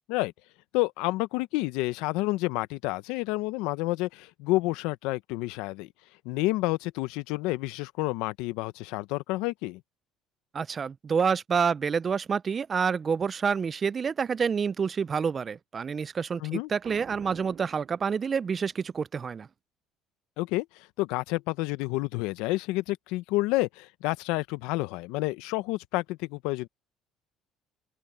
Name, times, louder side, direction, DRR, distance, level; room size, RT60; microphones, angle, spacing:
voice 1, 0.7-5.9 6.2-9.8 16.4-16.7 20.4-20.7 21.0-26.7, left 20 dB, 85° left, 0.7 m, -29 dB
voice 2, 10.5-19.5, right 6 dB, 30° right, 0.3 m, -28 dB
Boom, 16.8-18.7, right 10 dB, 45° right, 6.9 m, -48 dB
open air
cardioid pair, 130°, 0 cm